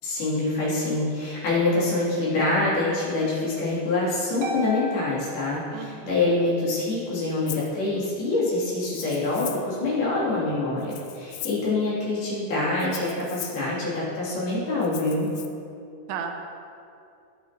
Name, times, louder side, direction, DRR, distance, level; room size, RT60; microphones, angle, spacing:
voice 1, 0.0-15.3, left 2 dB, 55° left, -9 dB, 4.7 m, -25 dB
Harp, 4.4-6.3, left 2 dB, 65° right, 2.3 m, -35 dB
voice 2, 5.7-6.3 16.1-16.4, right 7 dB, 80° right, 4 dB, 2.9 m, -34 dB
Rattle (instrument), 7.5-7.7 8.8-9.8 10.8-11.7 12.8-13.7 14.8-15.5, left 12 dB, 80° left, 2.7 m, -39 dB
20.5 x 7.5 x 3.0 m, 2.6 s
omnidirectional pair, 5.4 m